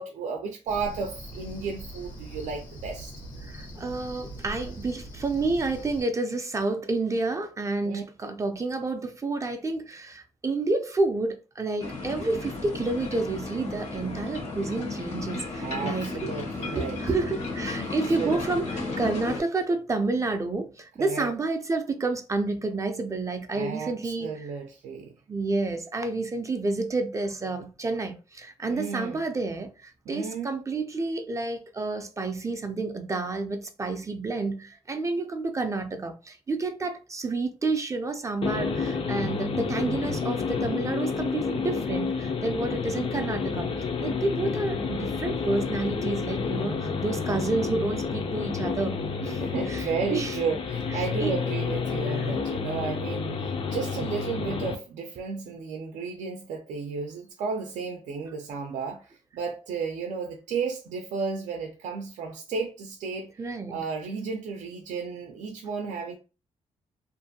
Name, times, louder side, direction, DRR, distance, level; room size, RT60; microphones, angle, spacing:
voice 1, 0.0-3.1 7.8-8.0 15.6-17.0 17.8-18.4 21.0-21.3 23.5-25.1 28.6-29.2 30.1-30.6 49.4-63.3 63.7-66.2, right 5 dB, 80° right, 0.4 m, -33 dB
Cricket, 0.7-6.0, right 1 dB, 80° left, 1.1 m, -41 dB
voice 2, 3.5-16.4 16.7-24.5 25.3-50.4 50.9-51.4 52.1-52.3 63.4-63.9, right 3 dB, 25° right, 0.4 m, -30 dB
sound 1, 11.8-19.4, left 3 dB, 65° left, 0.8 m, -34 dB
sound 2, 38.4-54.8, left 5 dB, 45° left, 0.4 m, -30 dB
2.5 x 2.2 x 2.7 m
cardioid pair, 90°, 12 cm